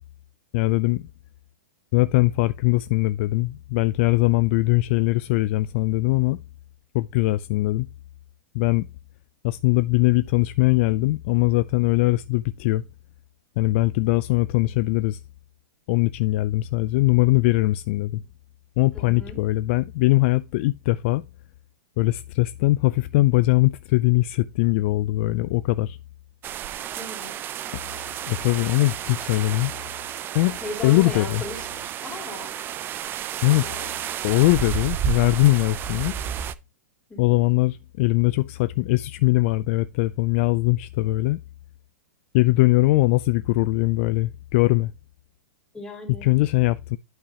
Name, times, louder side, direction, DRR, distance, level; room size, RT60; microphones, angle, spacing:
voice 1, 0.5-1.1 1.9-6.4 6.9-7.9 8.5-8.9 9.4-12.8 13.6-15.2 15.9-18.2 18.8-21.2 22.0-26.0 28.3-29.7 30.3-30.6 30.8-31.4 33.4-33.7 34.2-36.2 37.2-41.4 42.3-44.9 46.2-47.0, left 19 dB, 45° left, 0.3 m, -21 dB
voice 2, 18.9-19.5 27.0-27.3 30.6-32.6 33.5-33.9 37.1-37.4 45.7-46.2, left 2 dB, 5° left, 3.3 m, -37 dB
sound 1, 26.4-36.5, right 10 dB, 25° right, 0.4 m, -32 dB
11.0 x 5.6 x 2.8 m
hypercardioid pair, 135°, 9 cm